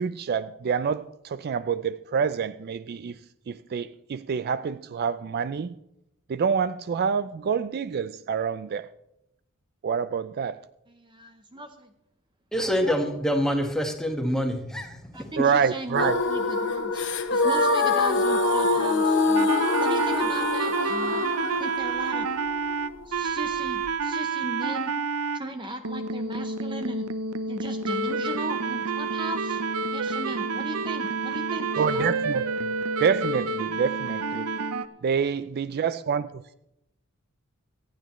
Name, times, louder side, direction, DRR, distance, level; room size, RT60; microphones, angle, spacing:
voice 1, 0.0-3.2 3.5-5.8 6.3-8.9 9.8-10.6 15.4-16.2 31.8-32.7 33.0-34.5 35.0-36.5, right 6 dB, 45° right, 0.4 m, -27 dB
voice 2, 10.9-11.9 15.1-19.5 19.8-21.2 21.6-22.3 23.0-25.0 25.3-27.1 27.5-29.6 29.9-32.2 34.5-34.7, right 1 dB, 20° right, 0.8 m, -37 dB
voice 3, 12.5-15.3, equal, 5° left, 1.6 m, -26 dB
sound 1, 15.9-23.9, left 3 dB, 60° left, 1.2 m, -25 dB
sound 2, 19.4-25.4 25.9-34.9, right 4 dB, 90° right, 0.7 m, -29 dB
25.5 x 9.2 x 3.1 m
head